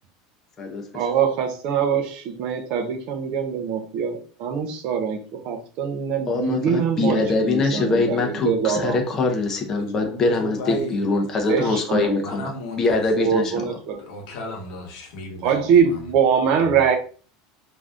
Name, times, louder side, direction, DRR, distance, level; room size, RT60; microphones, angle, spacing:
voice 1, 0.9-9.0 11.5-12.3 13.2-14.0 15.4-17.0, right 7 dB, 45° right, 7 dB, 0.4 m, -23 dB
voice 2, 6.3-13.8, left 3 dB, 20° left, 2 dB, 0.5 m, -23 dB
voice 3, 10.0-11.1 11.4-11.7 12.2-13.0 13.5-13.6 14.0-15.6, equal, 55° left, 2 dB, 0.9 m, -34 dB
2.5 x 2.3 x 3.4 m, 0.41 s
supercardioid pair, 170°, 2 cm